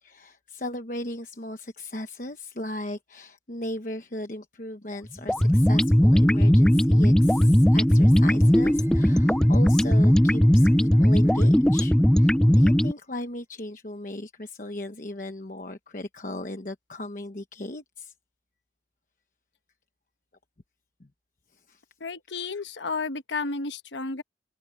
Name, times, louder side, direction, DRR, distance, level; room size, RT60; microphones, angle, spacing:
voice 1, 0.0-18.1 21.0-21.1 21.5-21.8, left 1 dB, 45° left, 1.1 m, -37 dB
sound 1, 5.3-12.9, equal, 5° left, 0.4 m, -18 dB
sound 2, 7.4-13.5, right 1 dB, 15° right, 7.3 m, -58 dB
voice 2, 22.0-24.2, left 4 dB, 80° left, 1.1 m, -32 dB
head